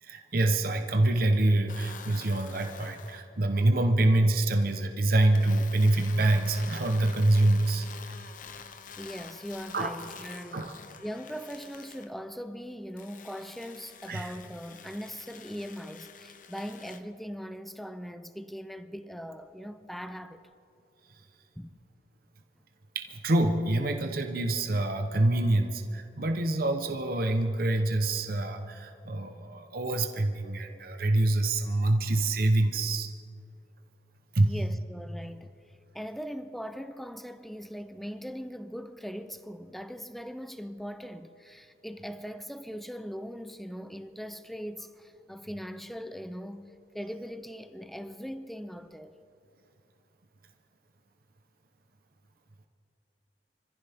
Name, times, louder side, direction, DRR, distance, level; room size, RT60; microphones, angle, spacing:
voice 1, 0.0-8.2 9.7-9.9 10.5-10.7 14.1-14.3 22.9-33.1 34.3-34.5, right 2 dB, 55° right, 0.9 m, -26 dB
sound 1, 1.7-3.2 5.3-12.1 13.0-17.0, left 6 dB, 50° left, 0.8 m, -47 dB
voice 2, 9.0-10.7 11.0-20.5 21.6-21.8 34.4-35.5 35.9-49.2, equal, ahead, 0.5 m, -40 dB
25.5 x 15.0 x 3.6 m
head